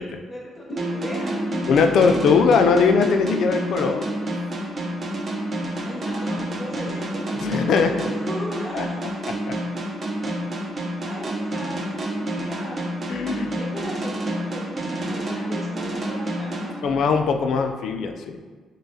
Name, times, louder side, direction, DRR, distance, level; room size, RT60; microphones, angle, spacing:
voice 1, 0.0-1.9 5.8-9.0 11.0-16.7, equal, 20° left, -4 dB, 0.9 m, -37 dB
sound 1, 0.7-6.3, right 1 dB, 45° left, 1.2 m, -35 dB
sound 2, 0.8-17.4, right 1 dB, 40° right, 0.7 m, -29 dB
voice 2, 1.7-4.1 7.4-7.9 8.7-8.9 9.5-9.6 13.1-13.6 16.8-18.4, left 5 dB, 70° left, 6 dB, 0.4 m, -20 dB
6.4 x 2.3 x 2.7 m, 1.5 s
cardioid pair, 90°, 0 cm